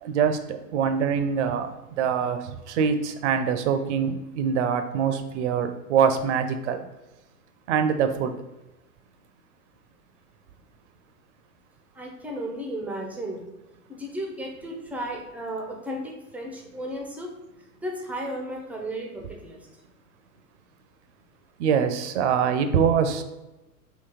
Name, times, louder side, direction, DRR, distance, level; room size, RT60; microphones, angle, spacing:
voice 1, 0.0-6.8 7.7-8.3 21.6-23.2, right 7 dB, 50° right, 8 dB, 0.6 m, -24 dB
voice 2, 11.9-13.4 13.9-17.3 17.8-19.6, right 1 dB, 5° right, 0 dB, 0.5 m, -34 dB
3.9 x 2.9 x 4.3 m, 1.0 s
hypercardioid pair, 105°, 46 cm